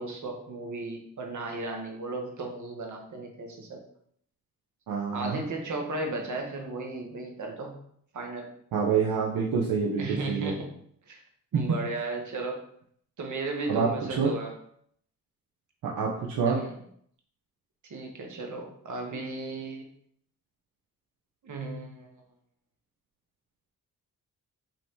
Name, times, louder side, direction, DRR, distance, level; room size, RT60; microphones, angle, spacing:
voice 1, 0.0-3.8 5.1-7.8 8.1-8.5 10.0-10.7 11.1-11.2 11.5-12.6 13.2-14.6 16.3-16.8 17.9-19.8 21.4-22.1, right 2 dB, 55° right, 2 dB, 1.1 m, -35 dB
voice 2, 4.9-5.4 8.7-10.5 11.5-11.8 13.7-13.9 14.2-14.3 15.8-16.6, right 6 dB, 75° right, -2 dB, 0.7 m, -26 dB
3.1 x 2.9 x 4.4 m, 0.66 s
cardioid pair, 70°, 36 cm